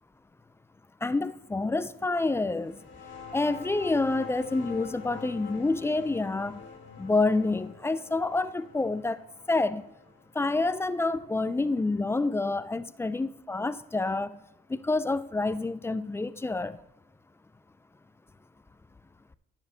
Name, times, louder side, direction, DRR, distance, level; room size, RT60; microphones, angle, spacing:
voice 1, 1.0-2.8 3.3-6.6 7.0-9.2 9.5-9.8 10.4-14.4 14.7-16.8, left 3 dB, 10° left, 0.3 m, -28 dB
sound 1, 2.6-11.9, left 6 dB, 70° left, 1.8 m, -46 dB
10.0 x 7.0 x 2.7 m
cardioid pair, 90°, 20 cm